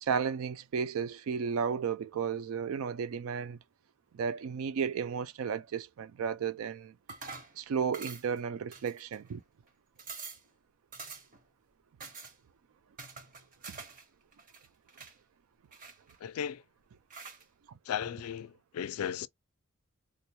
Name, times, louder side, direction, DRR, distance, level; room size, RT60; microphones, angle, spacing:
voice 1, 0.0-3.6 4.1-6.9 7.6-9.4 13.7-13.8, right 6 dB, 65° right, 0.3 m, -33 dB
sound 1, 7.1-7.6 7.9-8.4 8.7-9.3 9.7-9.8 10.0-10.5 10.9-11.4 12.0-12.3 13.0-14.0 14.3-15.1 15.7-16.4 17.1-17.4, right 4 dB, 40° right, 0.8 m, -46 dB
voice 2, 16.2-16.6 17.9-19.3, left 8 dB, 75° left, 0.3 m, -36 dB
3.6 x 2.2 x 2.8 m
head